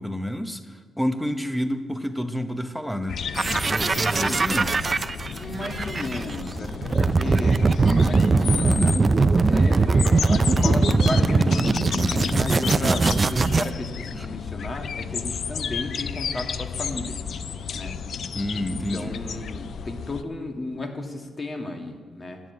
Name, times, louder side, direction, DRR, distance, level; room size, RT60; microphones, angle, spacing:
voice 1, 0.0-3.2 3.7-4.8 14.2-14.3 18.3-19.2, equal, ahead, 8 dB, 0.8 m, -29 dB
sound 1, 3.1-20.2, left 6 dB, 65° left, 0.5 m, -32 dB
sound 2, 3.3-13.7, right 4 dB, 30° right, 0.4 m, -21 dB
voice 2, 5.3-8.9 9.4-9.9 10.3-17.2 17.7-17.9 18.7-22.4, left 2 dB, 30° left, 3 dB, 1.8 m, -34 dB
12.5 x 7.5 x 9.5 m, 1.5 s
cardioid pair, 90°, 0 cm